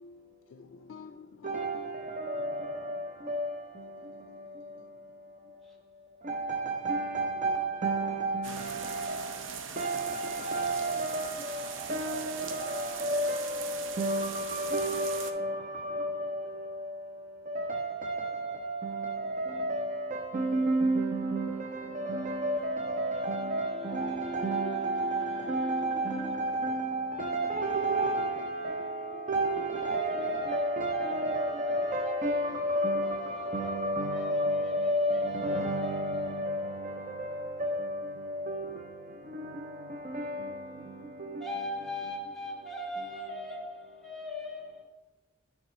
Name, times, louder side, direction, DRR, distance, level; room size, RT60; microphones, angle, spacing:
voice 1, 0.0-1.8 2.4-2.8 3.2-3.3 4.0-4.4 4.7-4.9 28.8-29.3 30.8-30.9 36.7-37.2 40.7-41.2, left 4 dB, 90° left, 0.3 m, -52 dB
voice 2, 1.4-42.2 42.6-43.4, right 1 dB, 40° right, 0.6 m, -32 dB
sound 1, 8.4-15.3, right 7 dB, 80° right, 0.6 m, -41 dB
voice 3, 21.9-22.4 23.0-26.3 29.8-32.3 33.0-36.5 41.4-44.8, left 2 dB, ahead, 1.3 m, -41 dB
9.2 x 3.6 x 4.2 m
head